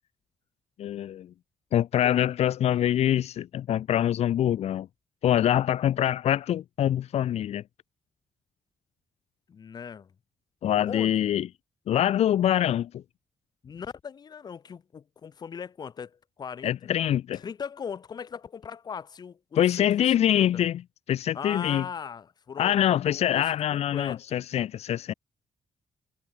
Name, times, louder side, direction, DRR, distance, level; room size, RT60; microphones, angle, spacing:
voice 1, 0.8-1.3 1.7-4.9 5.2-7.6 10.6-11.5 11.9-13.0 16.6-17.4 19.6-20.8 21.1-21.9 22.6-25.1, left 11 dB, 85° left, 3.4 m, -24 dB
voice 2, 9.5-10.1 10.9-11.1 13.6-16.9 17.4-20.5 21.3-23.4 23.7-24.4, left 6 dB, 40° left, 7.6 m, -39 dB
wide cardioid pair, 180°, 11 cm